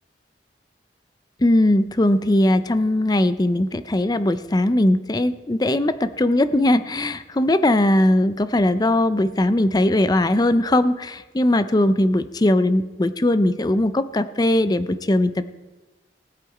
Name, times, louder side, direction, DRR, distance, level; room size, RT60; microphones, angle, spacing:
voice 1, 1.4-15.4, left 1 dB, 20° left, 12 dB, 0.5 m, -19 dB
19.0 x 8.1 x 4.9 m, 1.2 s
head